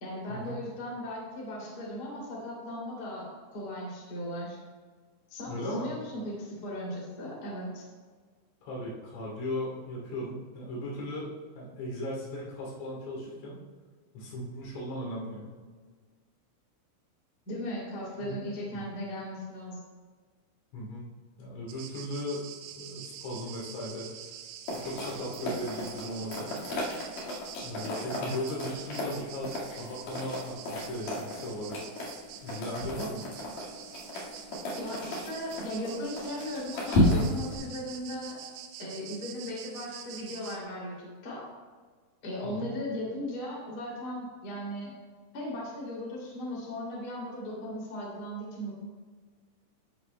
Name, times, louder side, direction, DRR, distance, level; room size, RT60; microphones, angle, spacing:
voice 1, 0.0-4.6 5.3-7.8 17.4-19.8 34.8-38.4 38.8-41.4 42.2-44.9 45.3-48.8, left 1 dB, 30° left, -5 dB, 2.2 m, -37 dB
voice 2, 5.5-5.9 8.6-13.6 14.1-15.5 18.2-18.3 18.7-18.8 20.7-21.1 21.4-22.5 22.8-24.1 24.7-26.6 27.6-31.8 32.4-33.2 42.4-42.7, left 1 dB, 75° left, -4 dB, 5.4 m, -37 dB
sound 1, 21.7-40.6, right 9 dB, 80° right, 2.7 m, -46 dB
sound 2, 24.7-37.6, left 1 dB, 55° left, 2.8 m, -33 dB
13.5 x 8.3 x 2.2 m, 1.5 s
omnidirectional pair, 5.7 m